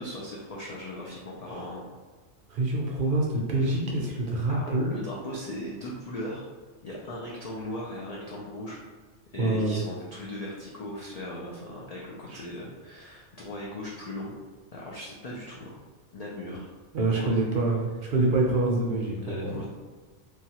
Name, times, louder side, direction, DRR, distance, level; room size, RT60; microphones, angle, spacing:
voice 1, 0.0-1.9 4.5-6.5 6.8-8.8 9.3-14.4 14.7-15.8 16.1-16.7 17.0-17.4 19.2-19.7, left 1 dB, 85° left, -4 dB, 0.3 m, -38 dB
voice 2, 2.5-4.9 9.4-9.8 12.3-12.4 16.9-19.5, right 2 dB, 60° right, -2 dB, 0.6 m, -26 dB
3.1 x 2.3 x 2.8 m, 1.4 s
omnidirectional pair, 1.2 m